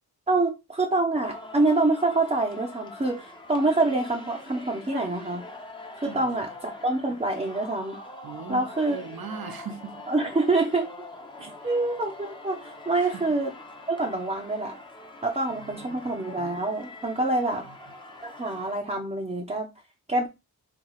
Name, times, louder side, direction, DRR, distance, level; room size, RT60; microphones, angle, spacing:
voice 1, 0.3-5.4 6.0-8.0 8.5-9.0 10.1-11.1 11.6-13.5 13.9-14.7 15.2-17.6 18.2-19.7 20.1-20.3, right 2 dB, 20° right, 0.8 m, -26 dB
Singing, 1.2-18.8, left 2 dB, 15° left, 0.8 m, -44 dB
voice 2, 6.0-6.5 8.2-10.0 11.4-11.7 12.9-13.2 15.5-16.1 17.5-17.8, right 6 dB, 65° right, 0.9 m, -41 dB
4.6 x 2.4 x 3.9 m
wide cardioid pair, 125°, 38 cm